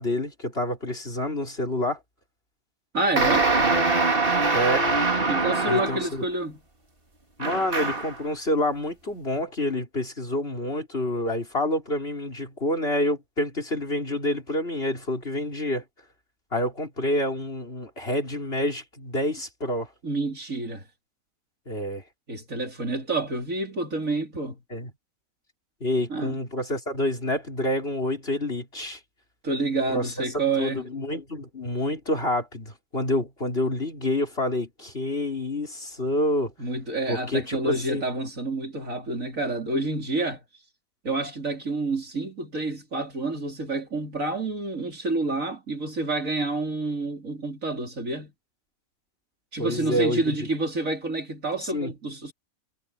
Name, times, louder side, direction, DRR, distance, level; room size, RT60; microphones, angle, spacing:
voice 1, 0.0-2.0 4.5-4.9 5.7-6.2 7.4-15.8 16.5-19.9 21.7-22.0 24.7-24.9 25.8-29.0 29.9-30.1 30.6-36.5 37.1-38.0 49.6-50.5 51.6-51.9, left 1 dB, 40° left, 4.5 m, -28 dB
voice 2, 2.9-3.5 5.3-6.6 20.0-20.8 22.3-24.6 26.1-26.4 29.4-30.8 36.6-40.4 41.0-48.3 49.5-52.3, right 2 dB, 60° right, 4.1 m, -28 dB
sound 1, 3.2-6.2 7.4-8.2, right 3 dB, 35° right, 2.8 m, -23 dB
omnidirectional pair, 1.6 m